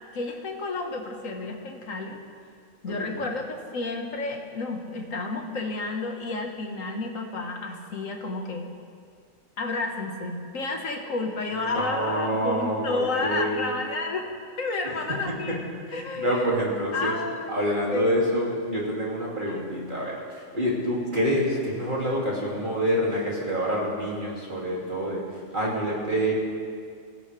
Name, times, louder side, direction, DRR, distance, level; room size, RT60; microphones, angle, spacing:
voice 1, 0.1-2.2 2.8-8.7 9.6-14.3 14.6-15.6 15.9-17.6 17.9-18.3 19.5-19.6, left 3 dB, 85° left, 2 dB, 1.9 m, -31 dB
voice 2, 2.9-3.2 11.8-13.7 14.8-14.9 15.3-15.4 15.9-17.1 17.5-25.2 25.5-26.3, equal, 40° right, -4 dB, 2.8 m, -27 dB
23.5 x 15.5 x 3.4 m, 2.2 s
omnidirectional pair, 1.3 m